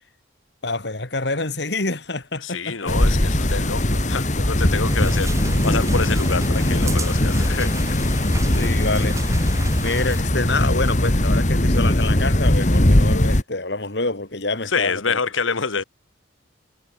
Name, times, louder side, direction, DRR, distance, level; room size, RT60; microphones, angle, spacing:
voice 1, 0.6-2.9 8.5-9.5 9.8-15.2 15.5-15.6, left 2 dB, 60° left, 2.4 m, -27 dB
voice 2, 2.4-7.7 8.1-8.2 14.7-15.8, left 5 dB, 90° left, 1.5 m, -27 dB
sound 1, 2.9-13.4, left 1 dB, 40° left, 2.0 m, -20 dB
sound 2, 4.8-10.2, right 2 dB, 15° right, 7.1 m, -33 dB
head